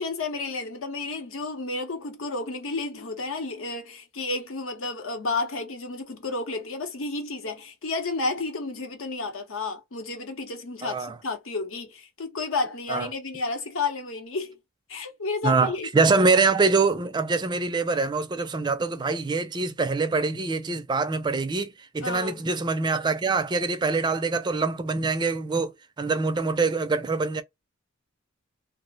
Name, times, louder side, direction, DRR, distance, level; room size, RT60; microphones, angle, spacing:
voice 1, 0.0-14.6 14.9-16.2 22.0-22.4, left 3 dB, 75° left, 0.8 m, -31 dB
voice 2, 10.8-11.2 12.9-13.1 15.4-25.7 26.0-27.4, right 4 dB, 20° right, 0.3 m, -24 dB
2.4 x 2.0 x 3.8 m
head